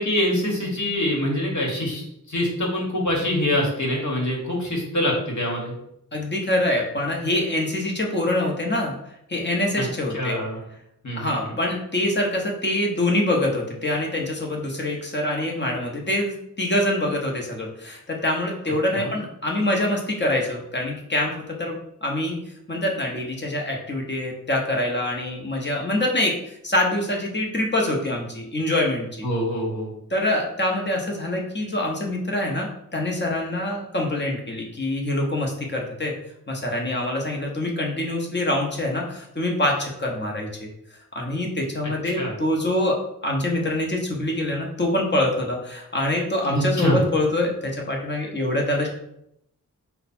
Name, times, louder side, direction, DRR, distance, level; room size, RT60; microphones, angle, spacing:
voice 1, 0.0-5.7 9.8-9.9 10.1-10.6 11.0-11.5 18.9-19.1 29.2-29.9 41.8-42.3 46.5-47.0, left 1 dB, 55° left, -2 dB, 1.4 m, -25 dB
voice 2, 6.1-8.9 9.3-10.4 11.1-22.4 22.7-29.3 30.1-36.1 36.5-40.7 41.1-48.9, left 1 dB, 30° left, 0 dB, 1.0 m, -25 dB
4.9 x 2.3 x 4.2 m, 0.78 s
wide cardioid pair, 65°, 34 cm